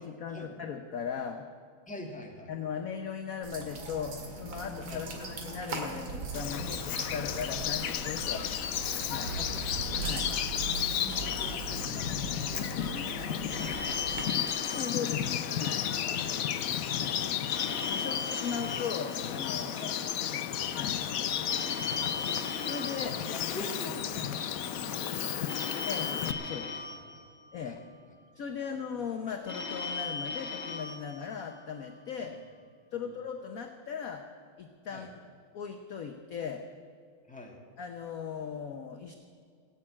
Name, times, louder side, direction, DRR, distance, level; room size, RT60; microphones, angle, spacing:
voice 1, 0.0-1.4 2.5-8.4 9.1-9.4 10.0-10.3 14.7-15.9 17.0-17.2 17.9-19.9 20.7-21.0 22.6-23.4 25.9-26.1 26.4-26.9 27.5-27.8 28.3-32.4 32.9-34.3 34.6-35.1 35.5-36.6 37.8-39.2, left 7 dB, 55° left, 5 dB, 1.0 m, -38 dB
voice 2, 1.9-2.5 4.9-5.1 8.3-8.5 9.3-10.0 10.2-10.4 10.9-14.8 16.0-16.9 18.0-18.2 19.8-20.0 23.0-25.7 26.9-27.2 27.6-27.8 32.2-32.3 33.0-33.1 34.9-35.1 37.3-37.6, left 1 dB, 5° left, 0 dB, 1.8 m, -46 dB
sound 1, 3.4-14.2, right 3 dB, 70° right, 2.7 m, -39 dB
Bird vocalization bird call bird song, 6.3-26.3, left 9 dB, 80° left, 0.7 m, -33 dB
Telephone, 13.5-16.0 17.5-20.0 21.5-24.0 25.5-28.0 29.5-32.0, left 4 dB, 35° left, 2.3 m, -39 dB
17.5 x 8.6 x 8.7 m, 2.1 s
omnidirectional pair, 2.3 m